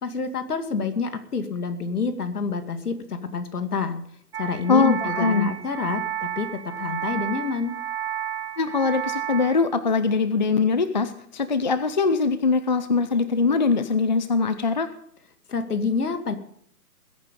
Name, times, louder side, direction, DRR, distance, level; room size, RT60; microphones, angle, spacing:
voice 1, 0.0-4.0 4.4-7.7 15.5-16.3, left 5 dB, 70° left, 8 dB, 2.4 m, -28 dB
sound 1, 4.3-9.5, right 10 dB, 40° right, 1.4 m, -31 dB
voice 2, 4.7-5.5 8.6-14.9, left 4 dB, 30° left, 11 dB, 0.5 m, -22 dB
20.5 x 8.9 x 5.4 m, 0.66 s
hypercardioid pair, 160°, 48 cm